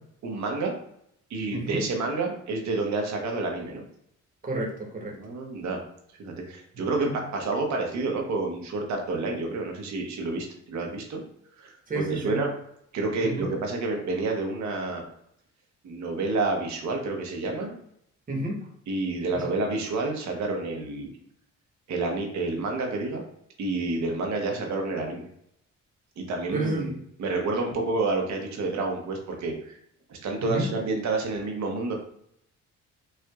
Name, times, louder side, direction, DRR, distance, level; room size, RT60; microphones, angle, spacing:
voice 1, 0.2-0.7 1.3-3.8 5.2-5.8 6.2-11.2 11.6-12.5 12.9-15.0 15.8-17.8 18.9-21.1 21.9-23.2 23.6-25.3 26.2-29.8 30.1-31.9, right 3 dB, 65° right, 2 dB, 1.0 m, -29 dB
voice 2, 1.5-1.8 4.4-5.2 7.0-7.1 11.9-12.4 13.2-13.5 18.3-18.6 26.5-26.9 30.4-30.7, right 2 dB, 25° right, -2 dB, 1.1 m, -30 dB
4.4 x 2.4 x 2.3 m, 0.71 s
cardioid pair, 90°, 30 cm